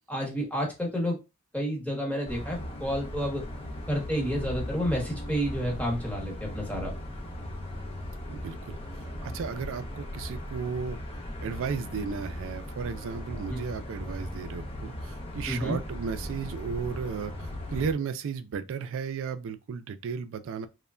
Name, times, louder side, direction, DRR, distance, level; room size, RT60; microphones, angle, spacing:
voice 1, 0.1-1.2 1.5-3.4 3.9-6.9 13.5-13.6 15.5-15.8, equal, 5° left, 0.9 m, -30 dB
sound 1, 2.3-17.9, left 1 dB, 25° left, 0.5 m, -38 dB
voice 2, 8.3-8.8 9.2-11.0 11.4-20.7, right 6 dB, 60° right, 0.3 m, -34 dB
3.2 x 2.1 x 2.3 m
head